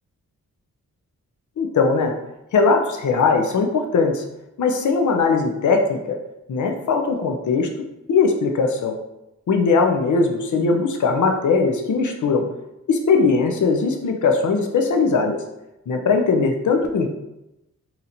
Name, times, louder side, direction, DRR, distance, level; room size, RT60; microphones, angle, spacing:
voice 1, 1.6-2.1 2.5-4.2 4.6-6.0 6.5-7.7 8.1-9.0 9.5-12.4 12.9-15.4 15.9-17.1, left 4 dB, 60° left, 4 dB, 0.6 m, -19 dB
2.8 x 2.5 x 4.2 m, 0.91 s
cardioid pair, 50°, 34 cm